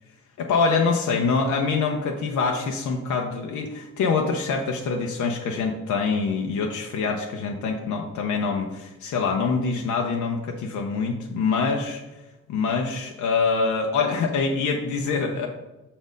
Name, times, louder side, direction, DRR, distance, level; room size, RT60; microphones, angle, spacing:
voice 1, 0.4-12.0 12.5-15.5, left 4 dB, 75° left, 1 dB, 0.8 m, -25 dB
6.0 x 4.3 x 5.2 m, 1.0 s
cardioid pair, 90°, 30 cm